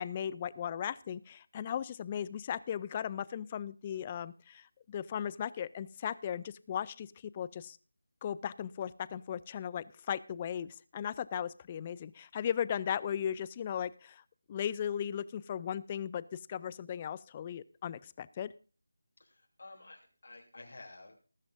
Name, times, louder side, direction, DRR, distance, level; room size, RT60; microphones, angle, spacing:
voice 1, 0.0-7.1 7.3-7.8 8.2-14.2 14.5-18.5, left 9 dB, 20° left, 19 dB, 0.4 m, -37 dB
voice 2, 19.2-21.1, left 2 dB, 65° left, 1 dB, 3.0 m, -52 dB
19.5 x 10.5 x 2.6 m, 0.39 s
figure-of-eight pair, 165°, 0 cm